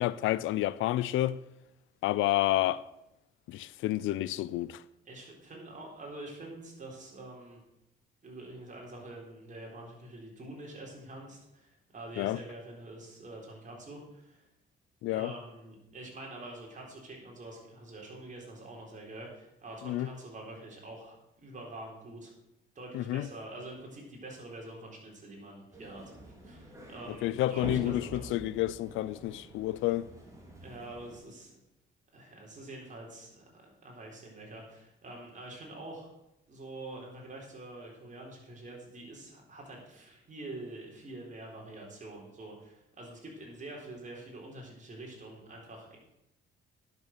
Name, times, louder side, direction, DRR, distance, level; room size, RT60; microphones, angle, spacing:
voice 1, 0.0-1.4 2.0-2.8 3.5-4.8 12.2-12.4 15.0-15.3 19.9-20.1 22.9-23.3 27.2-30.1, left 15 dB, 85° left, 0.4 m, -29 dB
voice 2, 5.1-7.6 8.2-14.4 15.1-22.3 22.7-26.1 26.4-28.2 30.6-31.6 32.1-36.1 36.5-46.0, right 2 dB, 40° right, 4.1 m, -46 dB
sound 1, 25.7-31.2, right 1 dB, 15° right, 3.1 m, -46 dB
10.5 x 6.7 x 6.6 m
cardioid pair, 90°, 20 cm